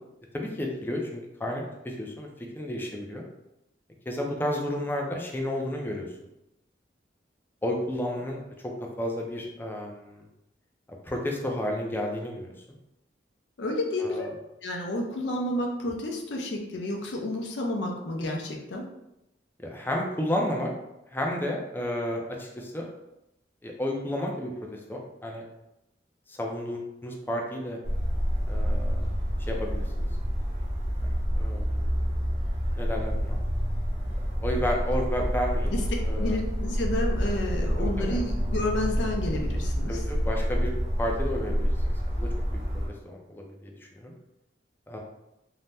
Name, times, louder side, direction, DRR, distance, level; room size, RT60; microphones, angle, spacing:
voice 1, 0.3-3.2 4.1-6.1 7.6-8.7 9.0-10.2 11.0-12.5 14.0-14.2 19.6-20.7 21.1-22.9 23.6-25.4 26.3-27.8 28.5-29.1 29.5-30.1 31.0-31.9 32.8-33.4 34.4-35.7 36.1-36.4 37.8-38.2 39.9-40.7 41.0-42.6 43.1-44.1 44.9-45.0, left 1 dB, 10° left, 0 dB, 0.4 m, -32 dB
voice 2, 13.6-14.4 14.6-18.8 35.7-35.8 36.1-40.0, left 1 dB, 85° left, 1 dB, 0.5 m, -30 dB
sound 1, 27.8-42.9, equal, 35° right, 0.6 m, -28 dB
2.7 x 2.1 x 3.3 m, 0.88 s
head